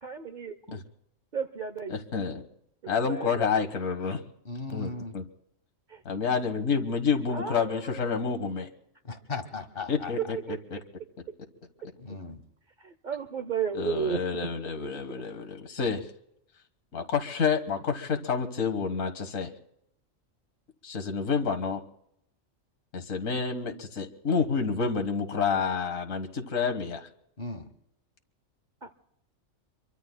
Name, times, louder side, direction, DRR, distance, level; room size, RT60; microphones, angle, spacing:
voice 1, 0.0-0.8 1.3-2.0 2.8-3.5 5.9-6.0 7.3-8.1 10.2-10.6 12.8-15.2 18.1-18.3 28.8-28.9, right 7 dB, 45° right, 11 dB, 0.7 m, -34 dB
voice 2, 1.9-2.4 2.9-4.2 4.7-5.2 6.0-8.7 9.9-10.2 13.8-16.1 16.9-19.5 20.8-21.8 22.9-27.1, left 5 dB, 75° left, 5 dB, 1.7 m, -29 dB
voice 3, 4.4-5.2 9.0-10.1 12.0-12.4 27.4-27.7, left 3 dB, 45° left, 8 dB, 1.5 m, -37 dB
27.0 x 23.5 x 2.2 m, 0.77 s
omnidirectional pair, 1.4 m